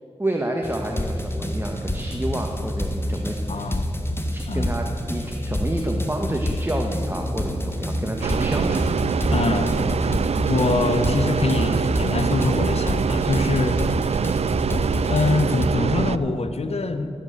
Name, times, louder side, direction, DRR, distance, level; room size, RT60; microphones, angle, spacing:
voice 1, 0.2-3.8 4.3-9.0, right 1 dB, 20° right, 1 dB, 1.4 m, -29 dB
sound 1, 0.6-15.7, left 1 dB, 20° left, 1.6 m, -28 dB
voice 2, 3.5-3.9 4.5-4.7 9.3-10.1 10.4-13.8 15.1-17.1, left 3 dB, 65° left, 9 dB, 1.1 m, -24 dB
sound 2, 6.9-12.4, right 2 dB, 45° right, 1.1 m, -39 dB
sound 3, 8.2-16.2, right 6 dB, 70° right, 0.4 m, -24 dB
16.0 x 9.0 x 6.7 m, 2.8 s
cardioid pair, 40°, 11 cm